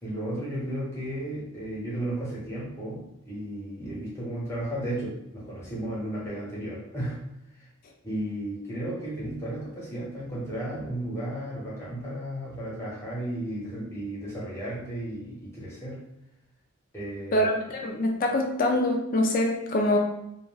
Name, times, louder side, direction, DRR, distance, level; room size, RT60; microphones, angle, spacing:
voice 1, 0.0-7.2 7.5-7.7 8.0-16.0 16.9-17.5, right 1 dB, 10° left, -6 dB, 0.8 m, -34 dB
voice 2, 17.3-20.0, left 1 dB, 40° left, 2 dB, 0.3 m, -24 dB
2.3 x 2.1 x 3.2 m, 0.83 s
head